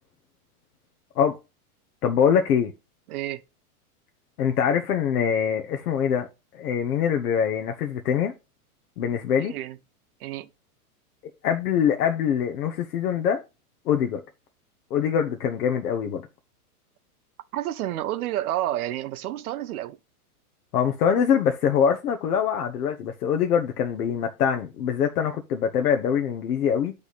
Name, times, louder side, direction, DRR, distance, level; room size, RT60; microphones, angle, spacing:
voice 1, 2.0-2.7 4.4-6.3 6.5-8.3 9.0-9.5 11.4-13.4 13.9-14.2 14.9-16.2 20.7-26.9, left 8 dB, 85° left, 1.0 m, -23 dB
voice 2, 3.1-3.4 9.4-9.8 10.2-10.5 17.5-20.0, right 13 dB, 75° right, 0.8 m, -30 dB
9.7 x 3.5 x 4.2 m
supercardioid pair, 155°, 45 cm